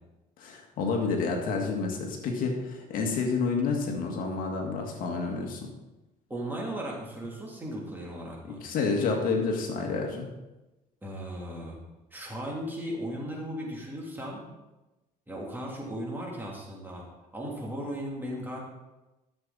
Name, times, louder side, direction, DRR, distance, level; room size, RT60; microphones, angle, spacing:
voice 1, 0.4-5.7 8.4-10.3, left 4 dB, 60° left, 2 dB, 2.0 m, -29 dB
voice 2, 6.3-8.6 11.0-11.8 12.1-14.5 15.3-17.0 17.3-18.6, equal, 10° right, -3 dB, 2.9 m, -36 dB
12.5 x 7.5 x 4.1 m, 1.0 s
cardioid pair, 125°, 16 cm